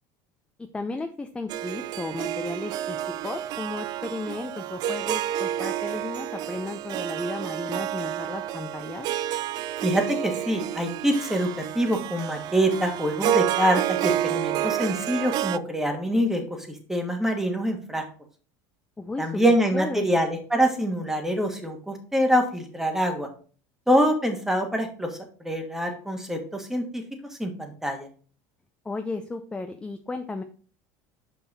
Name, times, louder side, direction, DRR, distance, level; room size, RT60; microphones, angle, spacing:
voice 1, 0.6-3.0 3.2-9.1 19.0-19.4 19.7-20.2 28.8-30.4, left 3 dB, 10° left, 6 dB, 0.6 m, -34 dB
Harp, 1.5-15.6, right 12 dB, 50° right, 0.3 m, -29 dB
voice 2, 9.8-16.4 16.9-18.0 19.2-23.3 23.9-25.1 25.4-27.0 27.4-28.1, equal, 5° right, 4 dB, 1.6 m, -25 dB
5.7 x 5.4 x 4.1 m, 0.41 s
supercardioid pair, 110°, 9 cm